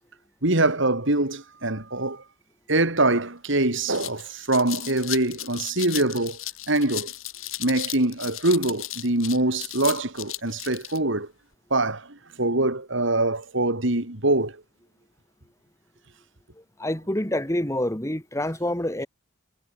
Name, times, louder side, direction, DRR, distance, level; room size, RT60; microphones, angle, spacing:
voice 1, 0.4-2.2 2.7-6.4 6.7-7.1 7.6-11.3 11.7-14.6, right 2 dB, 60° right, 3.3 m, -24 dB
sound 1, 3.2-3.3 3.6-11.0, left 14 dB, 75° left, 7.9 m, -35 dB
voice 2, 16.8-19.1, left 1 dB, 15° left, 2.2 m, -27 dB
head